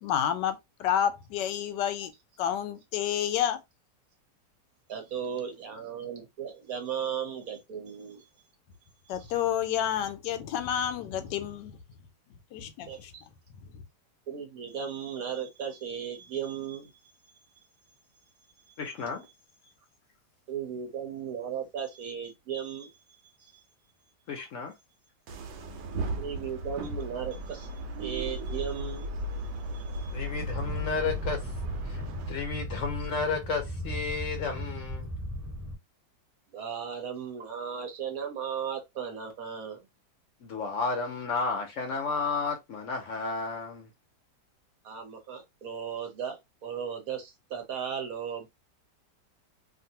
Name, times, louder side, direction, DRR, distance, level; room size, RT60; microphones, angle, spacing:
voice 1, 0.0-2.1 2.4-3.6 9.1-11.8 12.5-13.1 13.6-13.8, left 10 dB, 85° left, 1.2 m, -30 dB
voice 2, 4.9-8.3 12.9-13.2 14.3-16.9 17.6-17.7 18.7-18.8 20.5-23.5 26.2-27.7 28.0-29.1 29.7-30.1 36.5-39.8 44.8-48.5, right 7 dB, 60° right, 1.1 m, -36 dB
voice 3, 18.8-19.3 24.3-24.7 30.1-31.4 31.9-32.0 32.3-35.1 40.4-43.9, left 4 dB, 60° left, 0.9 m, -32 dB
sound 1, 25.3-32.3, right 1 dB, 85° right, 1.2 m, -35 dB
sound 2, 30.5-35.8, equal, 20° right, 1.4 m, -38 dB
2.8 x 2.5 x 2.7 m
omnidirectional pair, 1.8 m